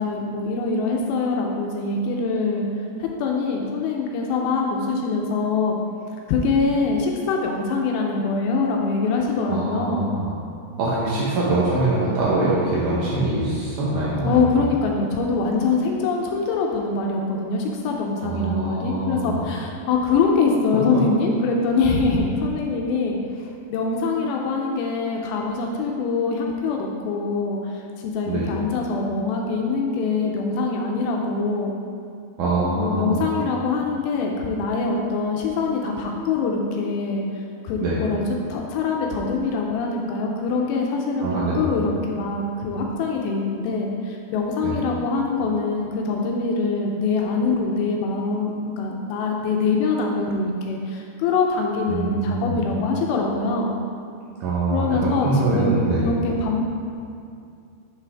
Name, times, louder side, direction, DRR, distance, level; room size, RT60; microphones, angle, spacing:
voice 1, 0.0-2.7 3.0-5.8 6.3-10.1 14.2-31.8 32.8-37.2 37.6-38.2 38.5-53.8 54.7-55.3 55.5-56.6, left 4 dB, 85° left, 0 dB, 2.7 m, -24 dB
voice 2, 9.5-10.3 10.8-14.5 18.2-19.4 28.3-28.5 32.4-33.2 37.8-38.0 41.2-41.6 44.6-44.8 51.9-52.6 54.4-56.1, right 2 dB, 85° right, -7 dB, 1.8 m, -23 dB
7.5 x 5.8 x 3.4 m, 2.4 s
omnidirectional pair, 4.9 m